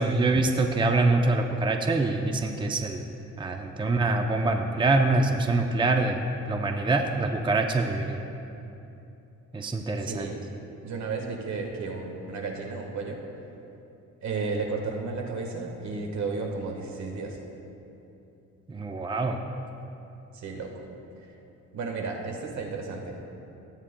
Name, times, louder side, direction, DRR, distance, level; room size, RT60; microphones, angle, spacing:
voice 1, 0.0-3.1 3.4-8.2 9.5-10.3 18.7-19.4, right 2 dB, 15° right, 4 dB, 0.6 m, -25 dB
voice 2, 10.0-10.4 10.8-13.2 14.2-17.4 20.3-20.9 21.7-23.2, right 4 dB, 65° right, 2 dB, 1.5 m, -33 dB
16.5 x 8.9 x 2.2 m, 2.8 s
cardioid pair, 90°, 30 cm